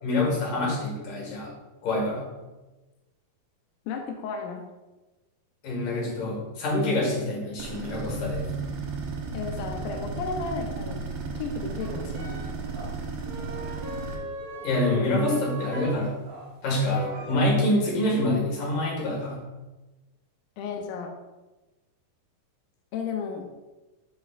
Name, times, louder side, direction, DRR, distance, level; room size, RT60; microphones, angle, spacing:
voice 1, 0.0-1.5 1.8-2.3 5.6-8.5 14.6-16.1 16.6-19.5, left 1 dB, 60° left, -3 dB, 3.2 m, -26 dB
voice 2, 3.9-4.6 9.3-11.0 11.3-12.4 20.6-21.1 22.9-23.5, left 5 dB, 80° left, 3 dB, 1.9 m, -33 dB
sound 1, 7.6-14.2, right 4 dB, 85° right, 3.1 m, -34 dB
sound 2, 11.8-16.5 16.8-17.4, equal, 65° right, 2.3 m, -39 dB
10.0 x 5.1 x 2.5 m, 1.1 s
omnidirectional pair, 4.3 m